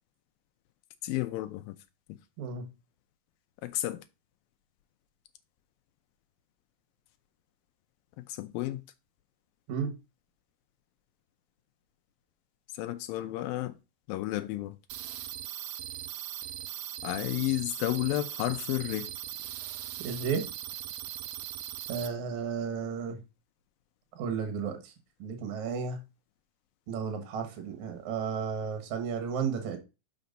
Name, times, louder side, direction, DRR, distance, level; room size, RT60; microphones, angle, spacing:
voice 1, 1.0-1.8 3.6-4.0 8.2-8.8 12.7-13.8 14.1-14.8 17.0-19.1, left 15 dB, 85° left, 2.5 m, -32 dB
sound 1, 14.9-22.1, right 12 dB, 85° right, 2.5 m, -39 dB
voice 2, 20.0-20.5 21.9-23.2 24.2-24.9 25.2-26.0 26.9-29.8, right 6 dB, 60° right, 2.8 m, -33 dB
6.2 x 5.9 x 5.2 m
omnidirectional pair, 4.0 m